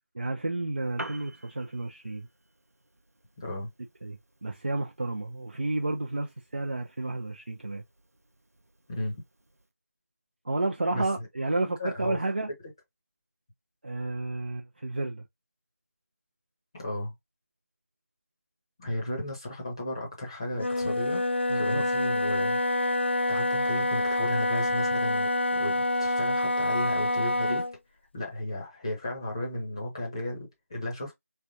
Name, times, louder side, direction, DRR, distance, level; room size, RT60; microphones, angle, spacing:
voice 1, 0.1-2.3 4.0-7.8 10.4-12.5 13.8-15.2 21.5-21.8, right 2 dB, 40° right, 0.5 m, -31 dB
Piano, 0.7-9.7, right 1 dB, 80° right, 0.7 m, -50 dB
voice 2, 3.4-3.7 8.9-9.2 10.9-11.1 11.6-12.2 16.7-17.1 18.8-21.2 21.5-22.6 23.3-27.6 28.1-31.1, left 1 dB, 20° left, 0.8 m, -34 dB
Wind instrument woodwind instrument, 20.5-27.8, left 2 dB, 45° left, 0.4 m, -27 dB
3.3 x 3.3 x 2.6 m
figure-of-eight pair, 165°, 8 cm